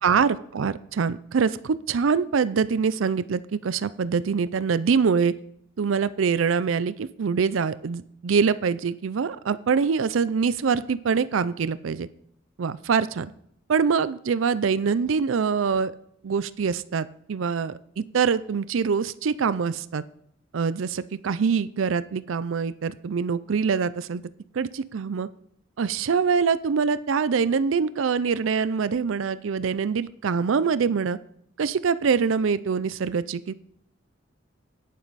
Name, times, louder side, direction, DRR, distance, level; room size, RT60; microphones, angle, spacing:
voice 1, 0.0-5.3 5.8-12.1 12.6-13.3 13.7-15.9 16.2-20.0 20.5-24.2 24.5-25.3 25.8-31.2 31.6-33.5, right 6 dB, 80° right, 16 dB, 0.4 m, -24 dB
10.5 x 9.7 x 4.1 m, 0.69 s
head